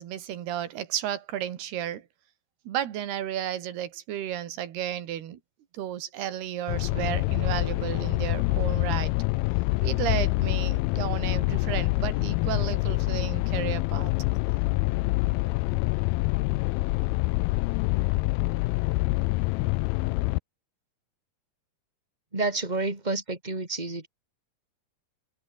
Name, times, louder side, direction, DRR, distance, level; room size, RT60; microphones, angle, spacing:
voice 1, 0.0-2.1 2.7-5.4 5.7-9.1 9.8-14.1, right 11 dB, 90° right, 4.0 m, -33 dB
sound 1, 6.7-20.4, left 23 dB, 80° left, 2.3 m, -26 dB
voice 2, 22.3-24.1, right 3 dB, 10° right, 4.3 m, -29 dB
omnidirectional pair, 4.5 m